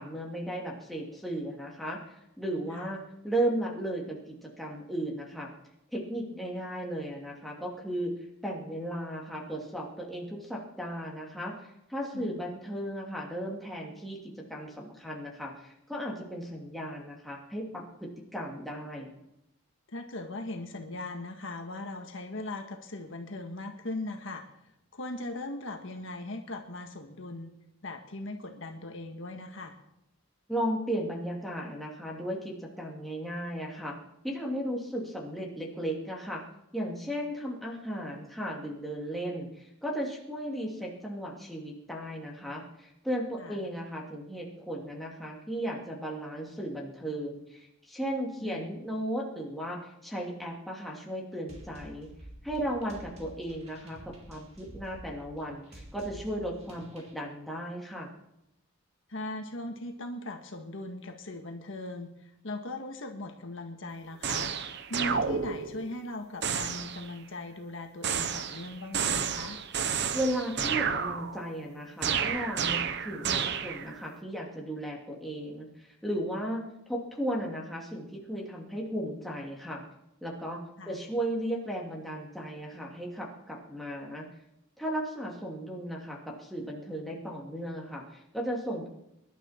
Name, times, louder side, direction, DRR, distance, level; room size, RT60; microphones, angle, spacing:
voice 1, 0.0-5.5 5.9-8.1 8.4-19.1 30.5-33.9 34.2-36.4 36.7-52.1 52.4-58.1 70.1-79.8 80.2-84.3 84.8-88.9, right 1 dB, ahead, -2 dB, 2.6 m, -35 dB
voice 2, 12.1-12.4 19.9-27.5 27.8-29.7 43.4-43.6 48.4-48.8 59.1-64.5 64.9-69.6 80.8-81.0, left 2 dB, 60° left, 4 dB, 1.6 m, -39 dB
sound 1, 51.5-57.1, right 1 dB, 30° right, 2.9 m, -49 dB
miscellaneous scifi effects, 64.2-65.9 66.4-67.1 68.0-71.6 72.0-74.0, right 7 dB, 50° right, 0.9 m, -31 dB
24.0 x 12.0 x 4.4 m, 0.83 s
head